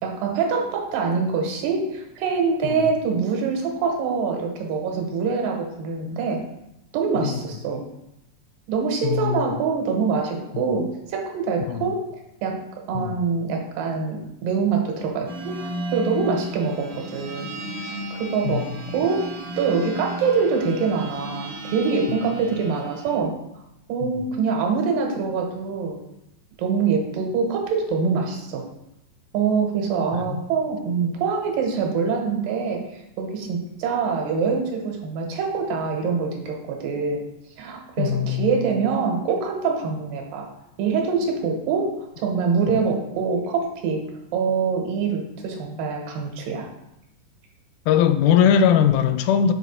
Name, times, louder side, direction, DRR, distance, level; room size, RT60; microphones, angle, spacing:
voice 1, 0.0-6.4 6.9-7.8 8.7-12.0 12.4-12.6 12.9-17.5 18.1-18.7 18.9-19.3 19.6-23.3 23.9-26.0 26.6-28.7 29.3-37.3 37.6-40.5 40.8-44.1 44.3-46.7, right 5 dB, 85° right, 1 dB, 2.7 m, -24 dB
voice 2, 9.0-9.5 10.5-10.7 11.7-11.8 12.9-13.2 18.4-18.6 24.0-24.2 30.1-30.4 38.0-38.5 42.7-42.8 47.9-49.5, left 8 dB, 80° left, 10 dB, 1.9 m, -20 dB
sound 1, 15.3-23.2, right 1 dB, 60° right, 1.3 m, -34 dB
7.1 x 4.0 x 4.2 m, 0.88 s
omnidirectional pair, 3.9 m